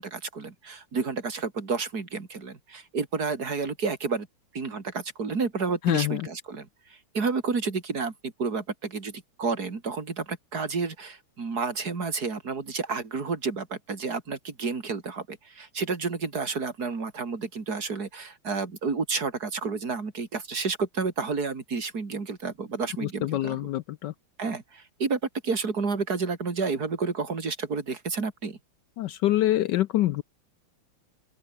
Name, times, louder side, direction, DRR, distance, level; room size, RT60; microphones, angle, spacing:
voice 1, 0.0-4.3 4.5-23.7 24.4-28.6, right 4 dB, 45° right, 3.4 m, -30 dB
voice 2, 5.8-6.3 23.0-24.1 29.0-30.2, left 14 dB, 75° left, 1.0 m, -25 dB
open air
omnidirectional pair, 2.3 m